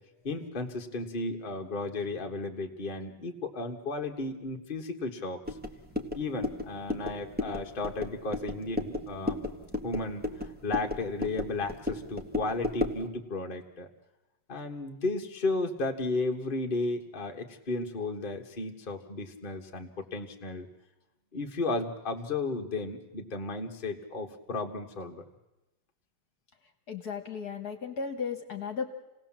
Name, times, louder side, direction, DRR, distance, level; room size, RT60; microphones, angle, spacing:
voice 1, 0.2-5.4 6.1-9.4 9.8-10.3 10.6-13.9 14.5-20.7 21.3-25.2, left 3 dB, 25° left, 2 dB, 1.5 m, -34 dB
sound 1, 5.5-13.1, left 2 dB, 5° right, 1.2 m, -35 dB
voice 2, 26.9-28.9, left 6 dB, 50° left, 5 dB, 1.8 m, -35 dB
28.0 x 18.0 x 7.4 m, 1.0 s
omnidirectional pair, 2.3 m